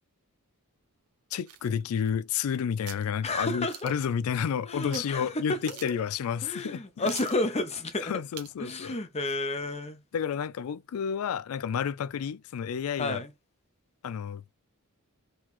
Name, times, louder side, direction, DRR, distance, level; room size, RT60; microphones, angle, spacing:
voice 1, 1.3-7.1 8.0-9.0 10.1-13.2 14.0-14.5, left 7 dB, 70° left, 0.3 m, -31 dB
sound 1, 1.5-2.5 2.9-3.1 3.7-4.1 4.9-5.1 5.4-5.5 5.7-6.1 6.5-6.6 7.1-7.4 8.3-8.6 9.0-9.1, right 10 dB, 85° right, 0.7 m, -45 dB
voice 2, 3.2-3.9 4.6-5.7 6.4-8.1 8.6-10.0 13.0-13.3, left 2 dB, 30° left, 0.7 m, -31 dB
3.9 x 3.1 x 4.1 m
head